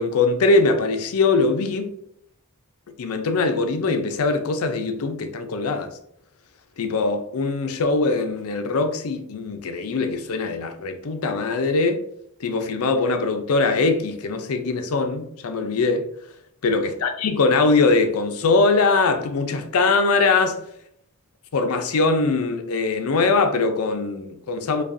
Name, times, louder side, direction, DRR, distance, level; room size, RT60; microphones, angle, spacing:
voice 1, 0.0-1.9 3.0-5.9 6.8-12.0 12.4-16.1 16.6-20.6 21.5-24.8, left 3 dB, 70° left, 0.5 m, -22 dB
4.9 x 2.3 x 2.5 m
head